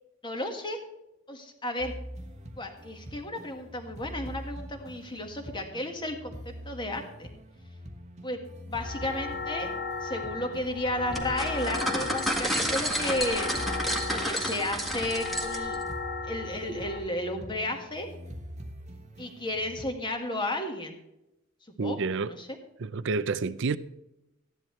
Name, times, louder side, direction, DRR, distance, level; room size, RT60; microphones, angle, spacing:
voice 1, 0.2-0.8 1.3-1.9 2.6-7.3 8.2-9.7 10.0-13.6 14.1-15.8 16.2-18.1 19.2-20.9 21.8-22.5, left 1 dB, 25° left, 1.7 m, -33 dB
sound 1, 1.8-19.9, equal, 35° right, 1.2 m, -44 dB
sound 2, 8.8-17.0, left 4 dB, 50° left, 2.4 m, -36 dB
sound 3, 11.1-15.8, equal, ahead, 1.6 m, -30 dB
voice 2, 21.8-22.3 22.8-23.8, right 4 dB, 60° right, 0.5 m, -29 dB
14.0 x 10.5 x 3.2 m
head